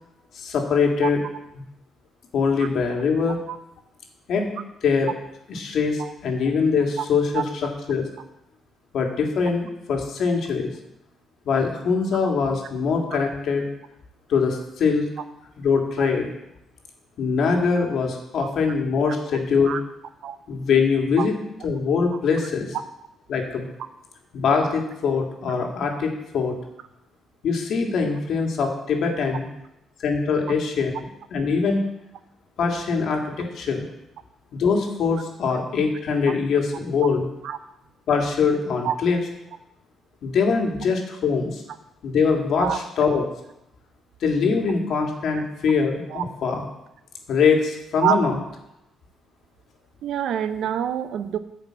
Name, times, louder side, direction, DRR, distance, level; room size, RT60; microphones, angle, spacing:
voice 1, 0.3-1.2 2.3-3.4 4.3-4.5 4.8-5.1 5.5-8.1 8.9-10.7 11.5-13.6 14.3-15.1 15.6-16.3 17.2-19.8 20.5-21.4 21.6-22.8 23.3-23.7 24.3-26.5 27.4-29.5 30.0-30.9 31.3-31.8 32.6-33.9 34.5-37.3 38.1-39.2 40.2-41.6 42.0-43.2 44.2-46.6 47.3-48.3, left 5 dB, 70° left, 2 dB, 1.9 m, -23 dB
voice 2, 50.0-51.4, right 9 dB, 75° right, 12 dB, 0.6 m, -26 dB
9.4 x 5.2 x 7.5 m, 0.86 s
cardioid pair, 90°, 0 cm